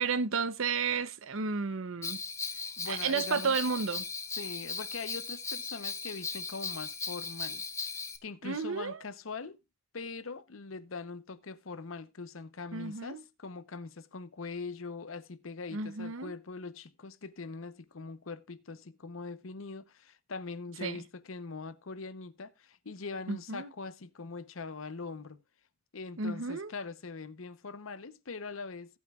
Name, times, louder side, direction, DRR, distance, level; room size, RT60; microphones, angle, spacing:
voice 1, 0.0-2.2 2.8-4.1 8.4-9.0 12.7-13.2 15.7-16.3 20.8-21.0 23.3-23.7 26.2-26.7, right 5 dB, 80° right, 0.7 m, -32 dB
Bell, 2.0-8.2, left 4 dB, 15° left, 0.9 m, -38 dB
voice 2, 2.8-3.6 4.4-7.6 8.2-9.6 9.9-25.4 25.9-29.0, left 4 dB, 80° left, 0.9 m, -42 dB
17.0 x 8.3 x 2.4 m
head